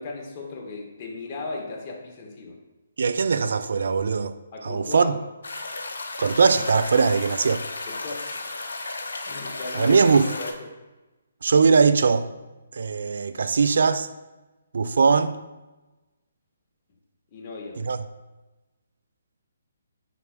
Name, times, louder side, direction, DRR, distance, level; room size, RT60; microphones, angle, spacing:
voice 1, 0.0-2.6 4.5-5.1 7.9-8.5 9.2-10.7 17.3-17.8, left 3 dB, 35° left, 1.3 m, -36 dB
voice 2, 3.0-4.3 4.6-5.2 6.2-7.6 9.7-10.3 11.4-12.3 12.7-14.1 14.7-15.4 17.8-18.0, right 5 dB, 65° right, 0.4 m, -20 dB
sound 1, 5.4-10.5, left 3 dB, 70° left, 0.7 m, -34 dB
9.6 x 4.9 x 2.2 m
figure-of-eight pair, 135°, 0 cm